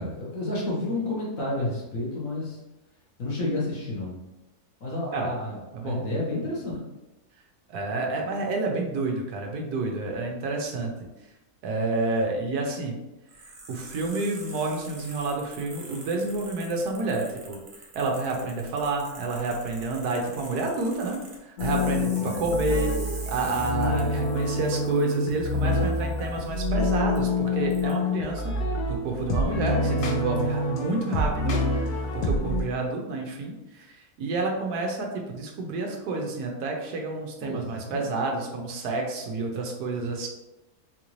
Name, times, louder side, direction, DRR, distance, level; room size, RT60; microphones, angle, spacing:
voice 1, 0.0-2.6 3.2-4.1 4.8-6.8 22.2-22.6 37.4-38.1, left 2 dB, 60° left, -5 dB, 1.4 m, -31 dB
voice 2, 7.7-10.9 11.6-13.0 13.7-17.6 17.9-28.5 28.9-40.3, right 3 dB, 80° right, 1 dB, 1.2 m, -29 dB
sound 1, 13.3-26.7 27.2-27.3 27.7-27.9, right 3 dB, 50° right, 0.8 m, -45 dB
sound 2, 21.6-32.6, left 2 dB, 85° left, 1.2 m, -27 dB
3.9 x 2.5 x 3.0 m, 1.0 s
omnidirectional pair, 1.6 m